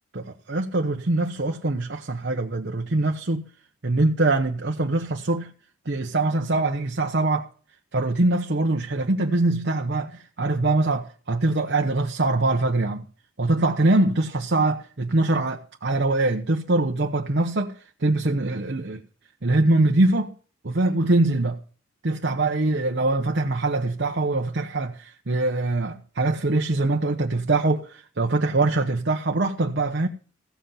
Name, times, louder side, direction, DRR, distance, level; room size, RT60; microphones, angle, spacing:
voice 1, 0.1-3.5 3.8-5.5 5.9-7.5 7.9-13.1 13.4-17.7 18.0-19.0 19.4-20.3 20.6-21.6 22.0-30.1, right 2 dB, 55° right, 0.9 m, -23 dB
15.5 x 7.9 x 5.7 m
head